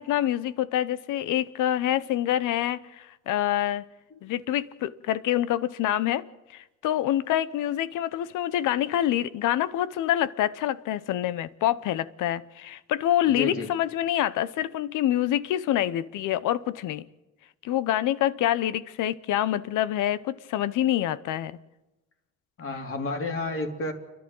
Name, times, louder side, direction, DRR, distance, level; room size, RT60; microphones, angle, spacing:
voice 1, 0.0-3.8 4.2-6.2 6.5-17.0 17.6-21.6, left 12 dB, 85° left, 0.9 m, -26 dB
voice 2, 13.4-13.7 22.6-23.9, left 3 dB, 45° left, 3.4 m, -30 dB
29.5 x 11.5 x 7.7 m
cardioid pair, 90°, 30 cm